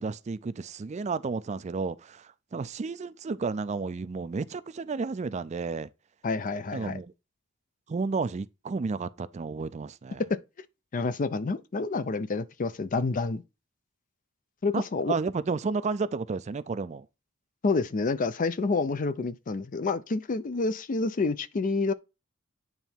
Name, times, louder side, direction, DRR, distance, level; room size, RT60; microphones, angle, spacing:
voice 1, 0.0-5.9 6.7-7.1 7.9-10.2 14.7-17.1, right 4 dB, 35° right, 0.4 m, -32 dB
voice 2, 6.2-7.0 10.3-10.4 10.9-13.4 14.6-15.1 17.6-21.9, left 3 dB, 40° left, 0.5 m, -28 dB
9.0 x 3.4 x 4.3 m
head